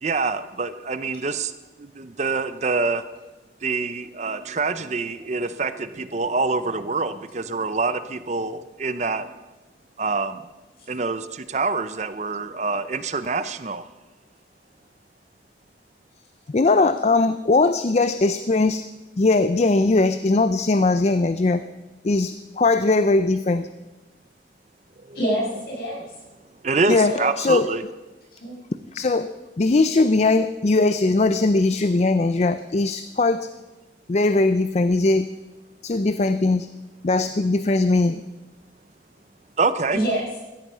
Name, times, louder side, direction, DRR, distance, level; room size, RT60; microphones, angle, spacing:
voice 1, 0.0-1.5 1.8-3.0 3.6-9.3 10.0-10.4 10.9-13.8 25.1-25.2 26.6-27.8 39.6-40.0, right 4 dB, 40° right, 12 dB, 0.6 m, -26 dB
voice 2, 16.5-18.8 19.2-21.6 22.0-23.7 26.9-27.7 28.9-29.3 29.6-33.5 34.1-35.3 35.8-36.7 37.0-38.2, left 3 dB, 40° left, 11 dB, 0.5 m, -20 dB
voice 3, 25.1-26.1 26.9-27.3 28.3-28.5 39.9-40.4, equal, 55° left, -4 dB, 6.9 m, -26 dB
16.0 x 13.5 x 5.6 m, 1.1 s
head